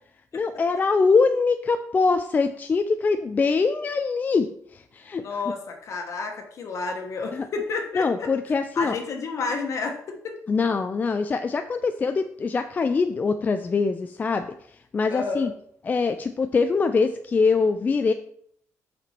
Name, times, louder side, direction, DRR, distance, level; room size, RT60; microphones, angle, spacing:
voice 1, 0.3-4.5 4.7-5.2 7.3-7.5 8.0-9.0 10.5-14.5 14.9-15.5 15.8-18.1, left 4 dB, 30° left, 8 dB, 0.3 m, -23 dB
voice 2, 5.2-8.3 8.7-10.0 10.2-10.4 15.1-15.5, left 4 dB, 55° left, 4 dB, 1.2 m, -30 dB
5.8 x 4.3 x 4.4 m, 0.67 s
cardioid pair, 125°, 6 cm